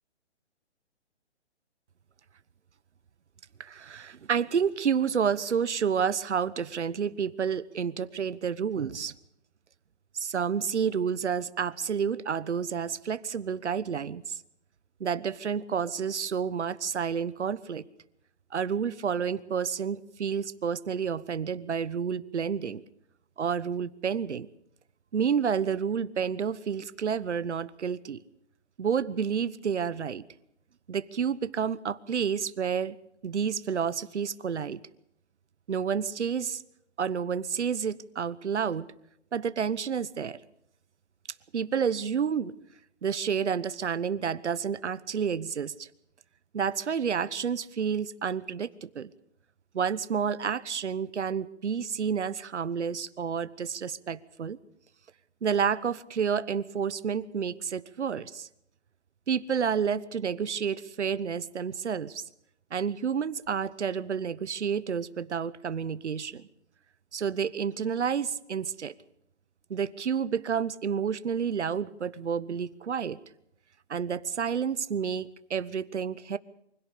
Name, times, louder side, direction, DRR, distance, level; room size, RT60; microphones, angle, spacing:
voice 1, 3.6-9.1 10.1-14.4 15.0-17.8 18.5-22.8 23.4-24.5 25.1-28.2 28.8-30.2 30.9-33.0 33.2-34.8 35.7-36.6 37.0-38.9 39.3-40.4 41.5-42.5 43.0-45.9 46.5-49.1 49.7-54.6 55.4-58.5 59.3-62.2 62.7-66.4 67.1-68.9 69.7-73.2 73.9-76.4, right 7 dB, 75° right, 16 dB, 1.2 m, -30 dB
25.0 x 17.0 x 6.7 m, 0.78 s
hypercardioid pair, 180°, 35 cm